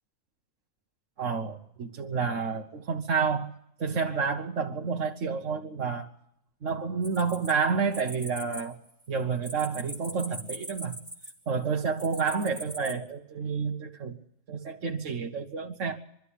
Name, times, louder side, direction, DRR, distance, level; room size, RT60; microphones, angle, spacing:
voice 1, 1.2-3.5 3.8-6.1 6.6-8.8 9.1-10.9 11.5-14.2 14.5-16.0, right 5 dB, 65° right, 1 dB, 1.4 m, -29 dB
sound 1, 7.0-8.6 8.9-11.5 12.0-12.9, right 1 dB, 5° right, 2.8 m, -41 dB
23.0 x 13.0 x 10.0 m, 0.78 s
omnidirectional pair, 1.4 m